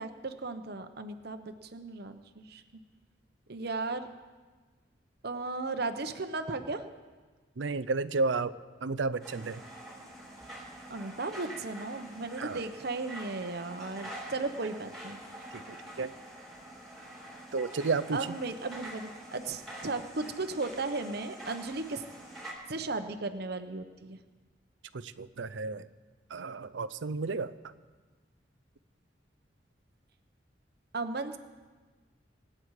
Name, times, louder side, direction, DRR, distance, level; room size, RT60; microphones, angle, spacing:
voice 1, 0.0-2.6 3.5-4.1 5.2-6.8 9.3-9.4 10.9-15.2 18.1-22.0 22.7-24.2 30.9-31.4, right 3 dB, 60° right, 8 dB, 0.9 m, -36 dB
voice 2, 7.6-8.5 8.8-9.6 12.4-12.6 15.5-16.1 17.5-18.2 24.9-25.8 26.3-27.5, right 4 dB, 80° right, 15 dB, 0.6 m, -32 dB
sound 1, 9.2-22.5, right 1 dB, ahead, 3.6 m, -46 dB
25.5 x 8.8 x 4.8 m, 1.4 s
head